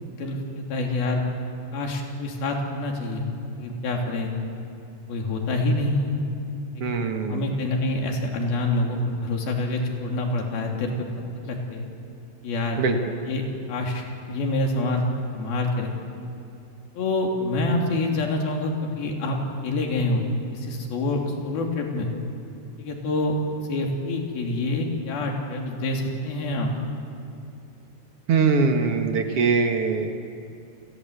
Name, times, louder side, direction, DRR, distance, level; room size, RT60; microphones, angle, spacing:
voice 1, 0.1-1.2 1.7-3.2 3.6-4.3 5.1-6.1 6.8-6.9 7.3-11.1 11.4-11.8 12.4-12.8 13.3-15.0 15.3-15.9 16.9-19.4 19.6-20.3 20.5-22.1 22.8-23.4 23.7-26.7, left 2 dB, 65° left, 1 dB, 4.8 m, -26 dB
voice 2, 6.8-7.6 12.8-13.1 28.3-30.1, right 4 dB, 55° right, 5 dB, 1.6 m, -22 dB
30.0 x 22.0 x 8.2 m, 2.8 s
omnidirectional pair, 4.6 m